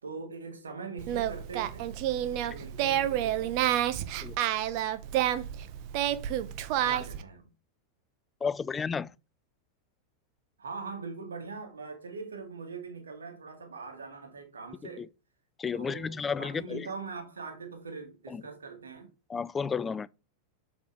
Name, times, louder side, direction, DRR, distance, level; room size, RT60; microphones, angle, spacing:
voice 1, 0.0-1.9 2.3-3.5 6.8-7.5 10.6-15.1 15.7-19.1, right 4 dB, 70° right, 2.0 m, -42 dB
Singing, 1.0-7.2, right 12 dB, 45° right, 0.7 m, -29 dB
voice 2, 8.4-9.1 15.0-15.1 15.6-16.9 18.3-18.4 19.3-20.1, left 6 dB, 15° left, 0.3 m, -32 dB
6.2 x 5.0 x 3.2 m
figure-of-eight pair, 90°, 0 cm